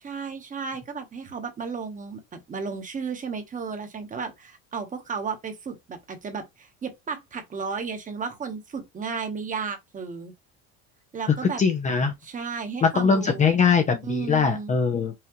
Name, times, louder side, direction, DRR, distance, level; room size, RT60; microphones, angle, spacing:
voice 1, 0.0-10.3 11.1-11.6 12.2-13.4 14.0-14.7, right 5 dB, 25° right, 1.1 m, -33 dB
voice 2, 11.6-12.1 12.8-15.1, left 5 dB, 25° left, 0.6 m, -21 dB
5.7 x 2.4 x 3.0 m
cardioid pair, 135°, 32 cm